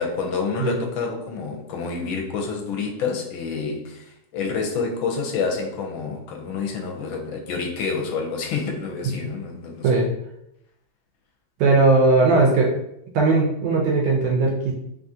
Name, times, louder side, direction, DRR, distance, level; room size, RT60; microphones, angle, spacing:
voice 1, 0.0-10.0, left 5 dB, 80° left, 1 dB, 1.3 m, -28 dB
voice 2, 11.6-12.7 13.1-14.7, right 3 dB, 70° right, -1 dB, 1.1 m, -18 dB
3.7 x 2.4 x 2.7 m, 0.81 s
omnidirectional pair, 2.3 m